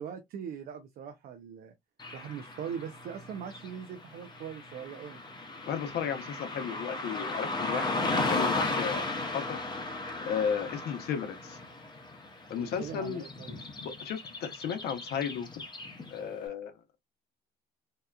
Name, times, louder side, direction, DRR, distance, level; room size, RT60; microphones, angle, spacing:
voice 1, 0.0-1.7 2.1-5.2 12.5-13.6, right 8 dB, 60° right, 0.5 m, -41 dB
Car passing by / Traffic noise roadway noise, 2.0-16.3, left 2 dB, 25° left, 0.7 m, -36 dB
voice 2, 5.7-9.1 9.3-9.6 10.3-11.6 12.5-13.2 13.8-15.6 16.1-16.7, left 7 dB, 70° left, 0.7 m, -34 dB
2.8 x 2.3 x 2.2 m
cardioid pair, 110°, 17 cm